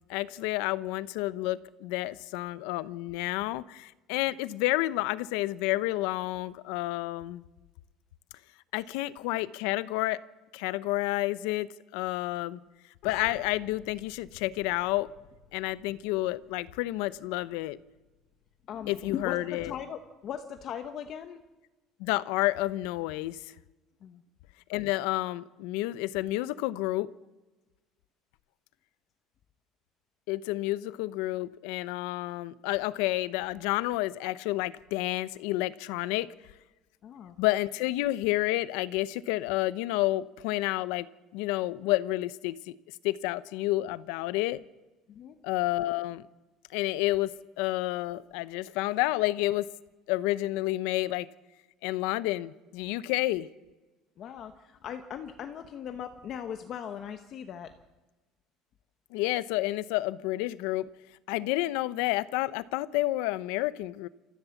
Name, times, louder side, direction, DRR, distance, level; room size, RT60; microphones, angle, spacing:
voice 1, 0.1-7.4 8.7-10.2 10.5-12.6 13.0-15.1 15.5-17.8 18.9-19.7 22.0-23.4 24.7-27.1 30.3-36.3 37.4-42.8 43.0-44.6 45.4-46.2 46.7-49.7 50.1-51.3 51.8-53.5 59.1-60.9 61.3-64.1, left 17 dB, 90° left, 17 dB, 0.8 m, -30 dB
sound 1, 13.0-20.3, left 8 dB, 55° left, 3.0 m, -53 dB
voice 2, 18.7-21.4 24.0-24.2 37.0-37.4 45.1-45.4 54.2-57.7, left 8 dB, 40° left, 7 dB, 1.1 m, -39 dB
28.0 x 15.0 x 7.2 m, 1.2 s
cardioid pair, 170°, 0 cm